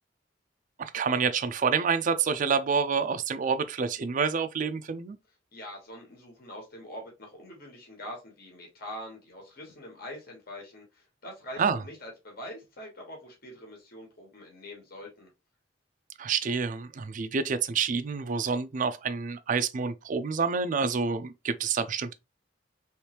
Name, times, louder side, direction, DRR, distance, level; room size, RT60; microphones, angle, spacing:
voice 1, 0.8-5.2 11.6-11.8 16.2-22.1, right 5 dB, 45° right, 0.4 m, -28 dB
voice 2, 5.5-15.3, left 1 dB, 55° left, 1.3 m, -44 dB
3.3 x 3.1 x 2.9 m
head